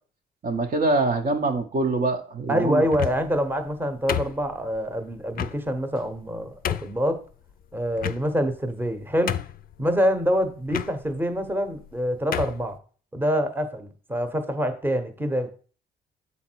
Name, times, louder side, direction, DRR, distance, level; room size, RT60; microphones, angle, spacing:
voice 1, 0.4-2.8, right 2 dB, 40° right, 3 dB, 0.8 m, -24 dB
voice 2, 2.5-7.2 7.7-9.4 9.8-12.8 13.1-15.6, equal, 10° right, 7 dB, 1.0 m, -26 dB
sound 1, 2.8-3.4 4.1-4.8 5.4-5.6 6.2-6.3 6.6-7.0 8.0-8.5 8.9-9.0 9.3-9.7 10.7-10.9 11.8-11.9 12.3-12.6, left 10 dB, 50° left, 0.4 m, -29 dB
7.1 x 4.2 x 4.5 m, 0.41 s
cardioid pair, 90°, 20 cm